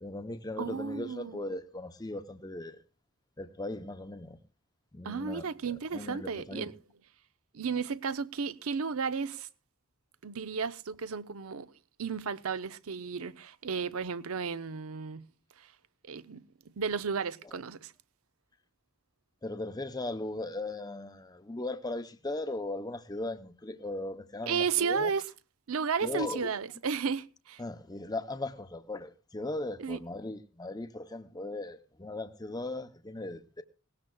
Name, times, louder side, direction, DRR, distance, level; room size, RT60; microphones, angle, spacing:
voice 1, 0.0-2.8 3.4-4.4 4.9-5.5 5.9-6.7 19.4-25.1 26.0-26.5 27.6-33.6, left 2 dB, 20° left, 0.6 m, -38 dB
voice 2, 0.6-1.5 5.0-6.7 7.5-9.5 10.2-11.7 12.0-15.3 15.6-15.7 16.1-16.4 16.8-17.9 24.5-25.3 25.7-27.6 29.8-30.0, right 5 dB, 85° right, 0.6 m, -33 dB
20.0 x 17.5 x 2.3 m
head